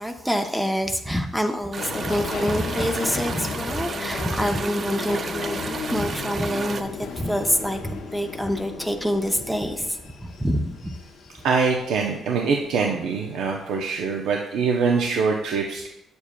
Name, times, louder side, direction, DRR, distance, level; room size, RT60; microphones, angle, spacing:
voice 1, 0.0-11.0, equal, 5° right, 5 dB, 0.6 m, -26 dB
sound 1, 1.7-6.8, right 5 dB, 45° right, 0.5 m, -33 dB
Subway metro underground, 1.8-12.5 12.8-13.6 13.8-14.0, left 5 dB, 80° left, 0.8 m, -35 dB
voice 2, 11.4-15.9, right 5 dB, 85° right, 1 dB, 0.7 m, -23 dB
8.4 x 6.9 x 2.2 m, 0.84 s
cardioid pair, 90°, 0 cm